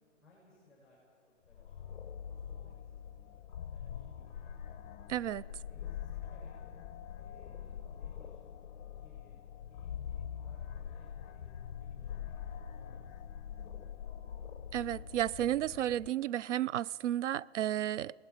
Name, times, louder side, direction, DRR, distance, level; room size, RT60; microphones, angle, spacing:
voice 1, 0.2-1.0 1.3-4.7 5.3-6.5 7.1-8.4 8.9-13.6, left 2 dB, ahead, 7.9 m, -65 dB
sound 1, 1.5-16.1, left 8 dB, 40° left, 0.9 m, -44 dB
voice 2, 5.1-5.4 14.7-18.1, right 12 dB, 70° right, 0.5 m, -32 dB
30.0 x 20.0 x 5.0 m
hypercardioid pair, 150°, 37 cm